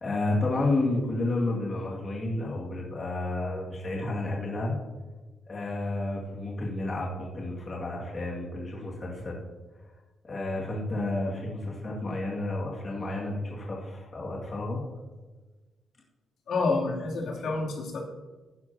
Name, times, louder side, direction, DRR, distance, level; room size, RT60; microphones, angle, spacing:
voice 1, 0.0-4.7 5.5-9.4 10.2-14.8, left 2 dB, 30° left, -4 dB, 2.1 m, -31 dB
voice 2, 16.5-18.0, left 3 dB, 70° left, -4 dB, 2.9 m, -28 dB
14.0 x 11.0 x 2.9 m, 1.2 s
wide cardioid pair, 160°, 0 cm